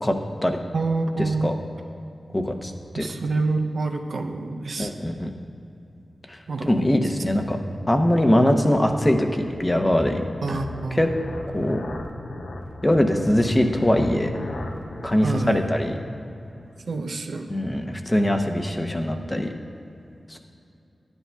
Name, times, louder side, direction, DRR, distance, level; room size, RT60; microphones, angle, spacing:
voice 1, 0.7-1.5 2.9-5.1 6.5-6.9 10.4-11.1 15.2-15.7 16.9-17.5, right 3 dB, 80° right, 4 dB, 0.5 m, -27 dB
voice 2, 2.3-3.1 4.8-5.3 6.3-7.6 7.9-10.2 10.5-10.6 11.0-11.1 11.5-11.9 12.8-14.3 15.0-16.0 17.5-19.5 20.3-20.4, left 1 dB, 20° left, 4 dB, 0.7 m, -22 dB
sound 1, 7.5-16.7, left 1 dB, 90° left, 0.7 m, -38 dB
12.0 x 9.8 x 2.3 m, 2.7 s
wide cardioid pair, 75°, 0 cm